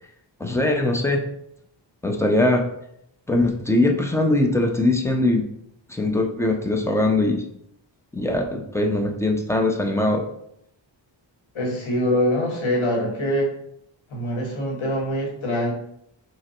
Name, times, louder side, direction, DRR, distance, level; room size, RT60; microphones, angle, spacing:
voice 1, 0.4-1.2 2.0-2.6 3.3-5.5 5.9-7.4 8.1-10.3, left 2 dB, 5° left, 2 dB, 0.4 m, -21 dB
voice 2, 11.5-13.5 14.1-15.7, equal, 85° left, 0 dB, 1.3 m, -24 dB
5.1 x 2.0 x 4.3 m, 0.74 s
wide cardioid pair, 160°, 46 cm